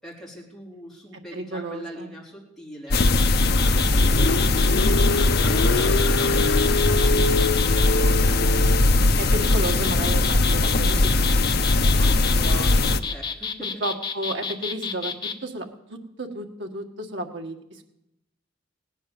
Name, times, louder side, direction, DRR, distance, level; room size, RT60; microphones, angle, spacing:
voice 1, 0.0-8.0 12.0-13.8, equal, ahead, -5 dB, 4.2 m, -43 dB
voice 2, 1.3-2.2 8.7-8.8 9.2-11.0 12.4-12.7 13.6-17.6, right 1 dB, 60° right, 2 dB, 1.9 m, -32 dB
sound 1, 2.9-13.0, left 2 dB, 50° left, 0.7 m, -20 dB
sound 2, 2.9-7.9 9.2-15.4, left 5 dB, 25° left, 0.9 m, -31 dB
Car, 3.5-9.0, left 2 dB, 75° left, 1.2 m, -26 dB
18.0 x 10.0 x 7.2 m, 0.85 s
head